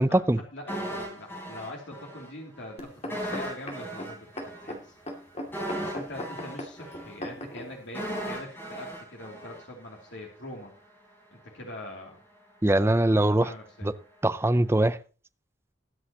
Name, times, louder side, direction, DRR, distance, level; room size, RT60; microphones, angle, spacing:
voice 1, 0.0-0.4 12.6-13.5 13.8-13.9 14.2-15.0, right 1 dB, 15° right, 13 dB, 0.5 m, -22 dB
voice 2, 0.5-4.3 4.6-4.9 5.8-10.7 11.3-12.2 13.4-13.9, left 1 dB, 75° left, 0 dB, 2.9 m, -43 dB
sound 1, 0.7-2.3 2.6-2.7 3.1-10.2 10.5-10.6, equal, 10° left, 3.7 m, -37 dB
sound 2, 2.8-7.7 8.4-8.5, left 1 dB, 35° left, 2.5 m, -38 dB
22.0 x 8.1 x 3.0 m, 0.36 s
head